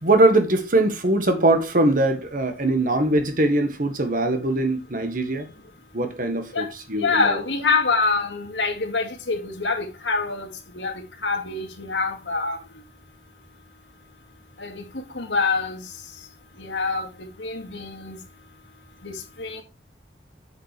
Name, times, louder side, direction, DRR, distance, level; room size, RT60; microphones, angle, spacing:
voice 1, 0.0-5.5 5.9-7.4, right 2 dB, 50° right, 1.6 m, -21 dB
voice 2, 7.0-10.5 10.7-12.6 14.6-14.8 15.1-15.8 16.6-18.2 19.0-19.6, left 4 dB, 85° left, 2.1 m, -25 dB
8.3 x 7.3 x 3.4 m
head